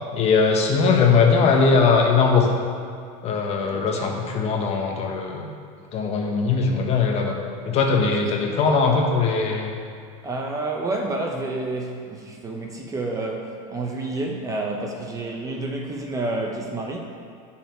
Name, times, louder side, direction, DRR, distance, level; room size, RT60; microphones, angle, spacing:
voice 1, 0.1-2.5 3.2-5.5 5.9-7.3 7.6-9.7, left 4 dB, 35° left, 1 dB, 1.2 m, -20 dB
voice 2, 3.7-4.2 8.2-8.3 10.2-17.0, right 2 dB, 20° right, 1 dB, 0.8 m, -29 dB
12.0 x 5.8 x 4.5 m, 2.2 s
supercardioid pair, 140°, 18 cm